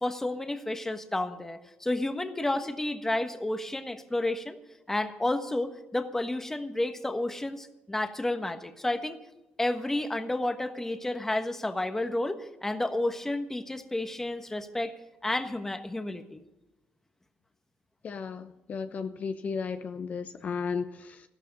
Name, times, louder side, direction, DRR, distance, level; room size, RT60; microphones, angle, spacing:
voice 1, 0.0-4.6 4.9-9.2 9.6-14.9 15.2-16.4, left 1 dB, 10° left, 8 dB, 1.4 m, -31 dB
voice 2, 18.0-21.2, left 5 dB, 45° left, 8 dB, 1.0 m, -34 dB
15.0 x 13.0 x 5.5 m, 0.98 s
cardioid pair, 110°, 4 cm